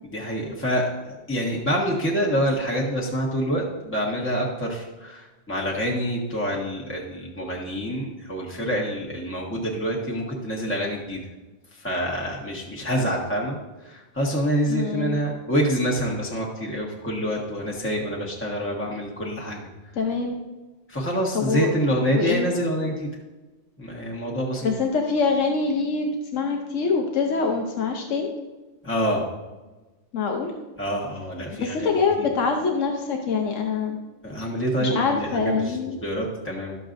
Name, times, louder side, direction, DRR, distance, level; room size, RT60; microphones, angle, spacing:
voice 1, 0.0-11.2 11.7-19.6 20.9-23.1 23.8-24.7 28.8-29.3 30.8-32.3 34.2-36.8, equal, 10° left, -2 dB, 1.3 m, -27 dB
voice 2, 14.7-15.2 20.0-20.4 21.3-21.8 22.1-22.5 24.6-28.3 30.1-30.5 31.5-34.0 34.8-36.0, left 4 dB, 90° left, 2 dB, 1.2 m, -24 dB
13.0 x 6.8 x 2.6 m, 1.2 s
omnidirectional pair, 1.3 m